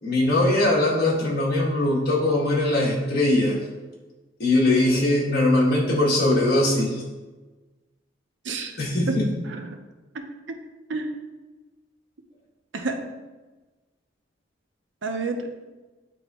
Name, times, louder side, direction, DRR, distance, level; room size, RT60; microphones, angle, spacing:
voice 1, 0.0-3.6 4.4-7.0 8.8-9.3, left 1 dB, 55° left, -5 dB, 2.0 m, -21 dB
voice 2, 8.4-8.8 9.1-9.8 10.1-10.6 10.9-11.1 12.7-13.0 15.0-15.5, right 3 dB, 70° right, 5 dB, 0.7 m, -30 dB
10.0 x 3.6 x 3.1 m, 1.2 s
head